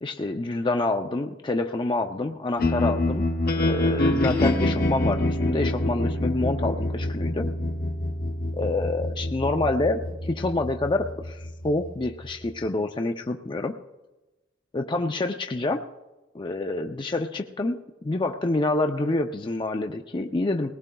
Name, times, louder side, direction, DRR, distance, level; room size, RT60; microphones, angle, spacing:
voice 1, 0.0-3.3 3.5-7.5 8.5-13.7 14.7-15.8 16.3-20.7, left 2 dB, 25° left, 4 dB, 0.4 m, -27 dB
sound 1, 2.6-12.7, left 1 dB, 50° left, 1.0 m, -26 dB
20.5 x 18.5 x 2.3 m, 1.1 s
head